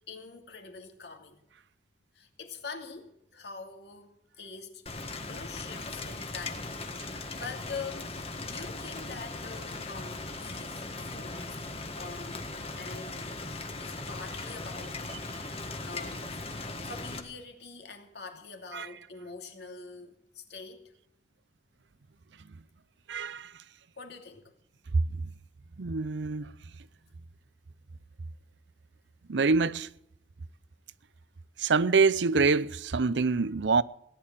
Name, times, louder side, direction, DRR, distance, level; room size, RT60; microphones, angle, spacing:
voice 1, 0.1-1.4 2.1-4.8 5.2-11.7 11.9-12.4 12.7-15.3 15.8-16.4 16.8-20.9 24.0-24.5, left 4 dB, 65° left, 2.7 m, -44 dB
Rain, 4.9-17.2, left 3 dB, 30° left, 1.6 m, -39 dB
voice 2, 23.1-23.5 25.8-26.5 29.3-29.9 31.6-33.8, right 4 dB, 80° right, 0.6 m, -25 dB
17.5 x 11.0 x 7.4 m
head